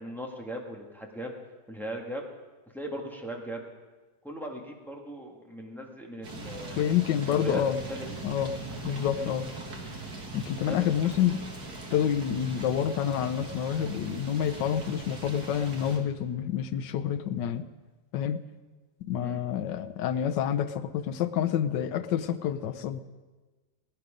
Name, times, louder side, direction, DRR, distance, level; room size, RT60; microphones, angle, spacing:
voice 1, 0.0-1.3 1.7-2.3 2.7-3.7 4.2-7.6 7.9-8.1 9.2-9.4 10.6-10.9 19.2-19.4, equal, ahead, 0 dB, 1.6 m, -38 dB
sound 1, 6.2-16.0, right 3 dB, 65° right, 2.3 m, -40 dB
voice 2, 6.8-7.8 8.2-8.6 8.8-9.4 10.3-11.4 11.9-17.7 18.1-18.4 19.0-23.0, left 9 dB, 90° left, 10 dB, 1.4 m, -28 dB
19.5 x 9.7 x 5.2 m, 1.3 s
omnidirectional pair, 1.9 m